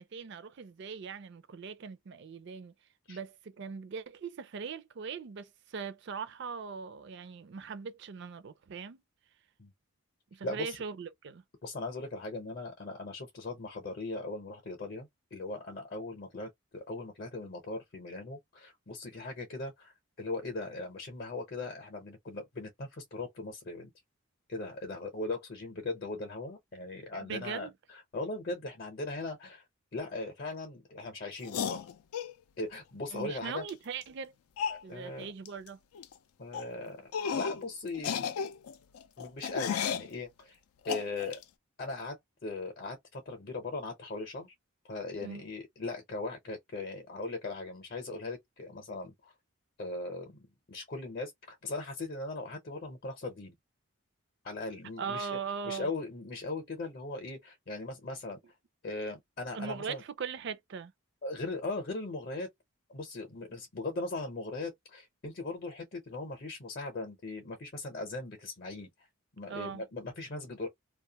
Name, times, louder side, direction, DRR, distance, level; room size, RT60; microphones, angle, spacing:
voice 1, 0.0-2.7 3.1-9.0 10.3-11.4 27.2-27.7 33.1-34.3 34.8-35.8 45.2-45.4 55.0-55.9 59.5-60.9 69.5-69.9, right 6 dB, 50° right, 0.4 m, -40 dB
voice 2, 10.4-10.8 11.6-23.9 24.5-27.7 28.1-29.6 29.9-31.9 32.6-33.6 34.7-35.3 36.4-37.0 37.3-38.3 39.2-40.6 40.8-41.4 41.8-42.2 42.4-44.5 44.9-49.3 49.8-53.5 54.4-55.3 55.6-58.4 58.8-60.0 61.2-62.5 62.9-69.1 69.3-70.7, left 2 dB, 45° left, 0.7 m, -39 dB
sound 1, 31.4-32.3 33.7-33.8 34.0-34.1 34.6-34.8 35.5-35.7 35.9-36.1 36.5-36.7 37.1-37.6 37.9-40.1 40.9-41.4, left 7 dB, 85° left, 0.4 m, -34 dB
2.4 x 2.3 x 2.7 m
head